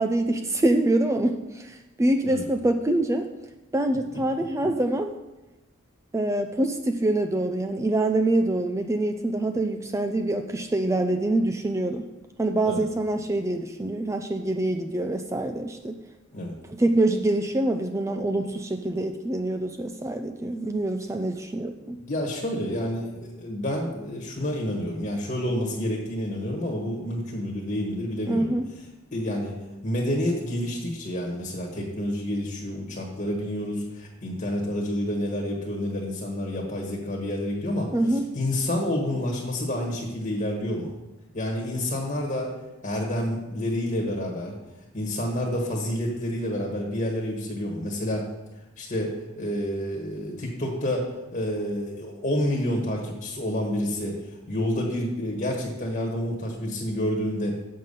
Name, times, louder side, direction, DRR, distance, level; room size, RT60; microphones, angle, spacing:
voice 1, 0.0-3.3 3.7-5.2 6.1-12.1 12.4-16.0 16.7-22.0 28.3-28.6 37.9-38.3, right 1 dB, 15° right, 6 dB, 0.4 m, -25 dB
voice 2, 22.0-28.5 29.1-29.5 29.8-40.9 41.3-42.5 42.8-44.5 44.9-48.2 48.8-57.6, left 1 dB, 35° left, -1 dB, 1.4 m, -29 dB
7.5 x 5.5 x 6.6 m, 1.0 s
head